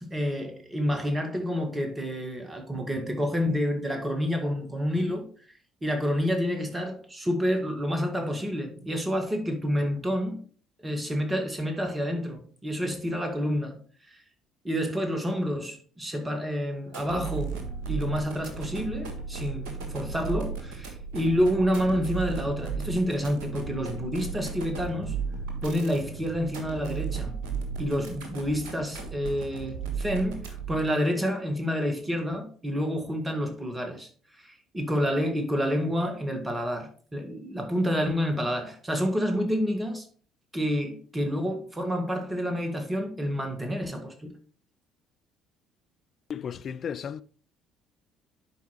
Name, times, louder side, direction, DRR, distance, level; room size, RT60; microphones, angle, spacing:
voice 1, 0.0-5.3 5.8-10.4 10.8-13.8 14.1-14.2 14.6-25.2 25.6-27.4 27.8-34.1 34.4-40.1 40.5-44.3, equal, 15° right, 1.8 m, -29 dB
sound 1, 16.9-30.9, right 5 dB, 65° right, 1.4 m, -35 dB
voice 2, 46.3-47.2, left 7 dB, 45° left, 0.4 m, -34 dB
11.0 x 4.7 x 3.0 m
figure-of-eight pair, 50°, 0 cm